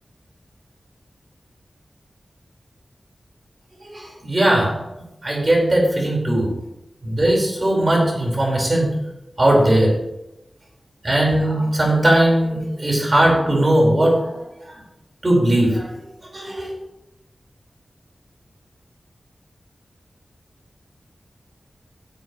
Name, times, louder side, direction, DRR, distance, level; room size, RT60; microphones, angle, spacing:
voice 1, 3.8-4.8 5.2-6.5 7.0-8.9 9.4-10.0 11.0-14.2 15.2-15.9 16.3-16.7, right 1 dB, 35° right, -2 dB, 4.4 m, -18 dB
16.0 x 7.9 x 3.1 m, 0.90 s
wide cardioid pair, 100°, 0 cm